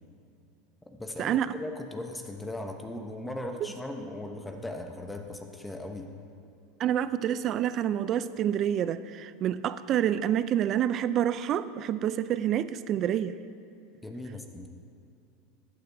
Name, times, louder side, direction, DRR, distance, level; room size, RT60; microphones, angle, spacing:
voice 1, 0.9-6.1 14.0-14.7, left 1 dB, 10° left, 4 dB, 0.7 m, -38 dB
voice 2, 6.8-13.3, right 10 dB, 45° right, 14 dB, 0.4 m, -28 dB
15.5 x 8.7 x 2.6 m, 2.7 s
supercardioid pair, 105°, 0 cm